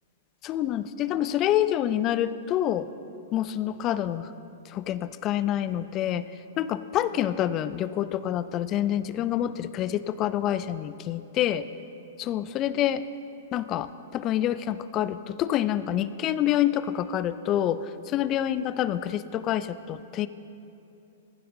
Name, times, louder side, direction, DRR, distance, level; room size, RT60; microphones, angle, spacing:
voice 1, 0.4-2.9 3.3-4.3 4.7-6.2 6.6-11.6 12.2-13.0 13.5-17.8 18.1-20.3, left 11 dB, 35° left, 14 dB, 0.4 m, -27 dB
15.0 x 13.5 x 2.7 m, 2.8 s
hypercardioid pair, 115°, 0 cm